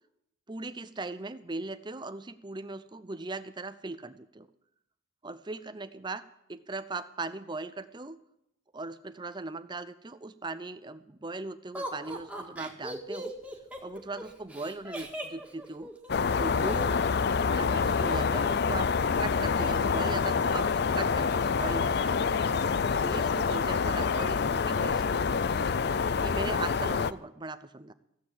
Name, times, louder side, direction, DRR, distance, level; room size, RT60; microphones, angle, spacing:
voice 1, 0.5-4.5 5.2-6.2 6.5-8.2 8.7-13.3 13.8-15.9 16.4-17.1 17.4-18.9 19.2-22.6 23.0-25.5 26.2-27.9, right 3 dB, 25° right, 12 dB, 0.7 m, -39 dB
Laughter, 11.7-16.8 17.8-18.7 19.0-19.1 19.4-19.9, right 1 dB, 5° right, 1.8 m, -40 dB
sound 1, 16.1-27.1, left 5 dB, 55° left, 0.4 m, -27 dB
15.0 x 8.5 x 7.4 m, 0.78 s
head